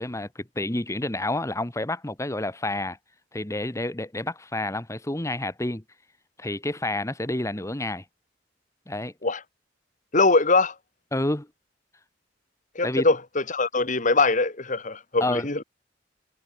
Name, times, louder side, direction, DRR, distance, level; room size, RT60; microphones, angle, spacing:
voice 1, 0.0-3.0 3.3-5.8 6.4-8.0 8.9-9.1 11.1-11.5 12.8-13.1 15.2-15.5, left 1 dB, 15° left, 1.5 m, -29 dB
voice 2, 10.1-10.7 12.8-15.6, left 3 dB, 45° left, 2.4 m, -22 dB
head